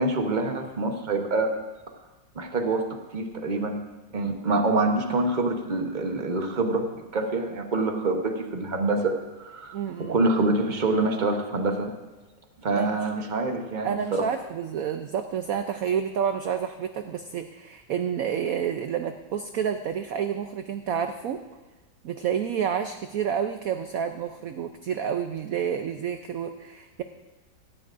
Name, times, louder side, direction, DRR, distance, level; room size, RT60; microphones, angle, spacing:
voice 1, 0.0-1.5 2.3-2.8 3.1-3.8 4.1-6.9 7.1-11.9 12.6-14.3, right 2 dB, 35° right, 4 dB, 0.7 m, -26 dB
voice 2, 9.7-10.2 12.7-12.9 13.8-21.4 22.0-27.0, right 8 dB, 90° right, 8 dB, 0.7 m, -29 dB
16.5 x 13.0 x 2.5 m, 1.2 s
omnidirectional pair, 2.1 m